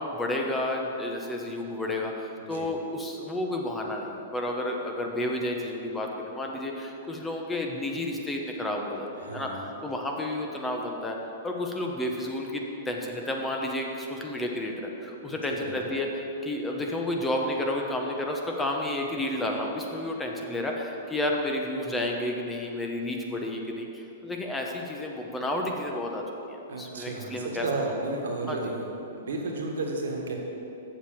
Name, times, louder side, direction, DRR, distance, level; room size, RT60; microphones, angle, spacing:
voice 1, 0.0-11.2 11.4-26.2 26.5-27.7 28.5-28.7, left 1 dB, 10° left, 1 dB, 1.1 m, -31 dB
voice 2, 9.2-9.7 15.3-15.7 26.7-30.4, right 2 dB, 75° right, 1 dB, 1.7 m, -33 dB
7.2 x 6.8 x 7.3 m, 3.0 s
hypercardioid pair, 120°, 0 cm